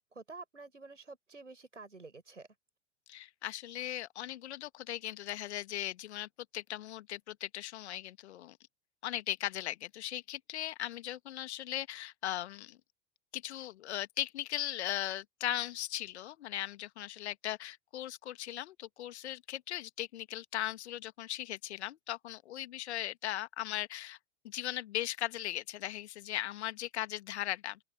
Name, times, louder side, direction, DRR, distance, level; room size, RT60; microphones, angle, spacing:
voice 1, 0.0-2.5, right 3 dB, 90° right, 7.3 m, -49 dB
voice 2, 3.1-8.6 9.0-12.8 13.3-24.2 24.4-27.8, left 13 dB, 65° left, 1.8 m, -38 dB
open air
figure-of-eight pair, 85°, 36 cm